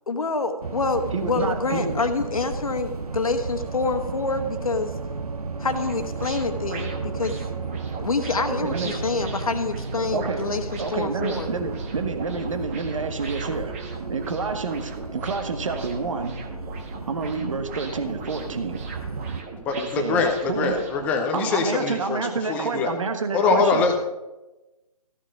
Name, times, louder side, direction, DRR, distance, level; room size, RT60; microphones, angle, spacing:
voice 1, 0.1-4.9 5.6-7.4 8.0-11.5, left 3 dB, 65° left, 7 dB, 1.4 m, -27 dB
sound 1, 0.6-19.4, right 4 dB, 75° right, 0.8 m, -34 dB
voice 2, 1.1-2.0 8.5-9.0 10.1-10.5 10.8-13.7 14.1-16.4 17.1-18.9 19.8-20.9 21.3-24.0, right 4 dB, 55° right, 7 dB, 1.3 m, -29 dB
sound 2, 5.6-21.1, right 4 dB, 20° right, 1.3 m, -39 dB
voice 3, 19.7-22.2 22.5-22.9 23.3-24.0, left 4 dB, 5° left, 4 dB, 0.6 m, -23 dB
14.5 x 6.1 x 5.8 m, 1.0 s
figure-of-eight pair, 150°, 20 cm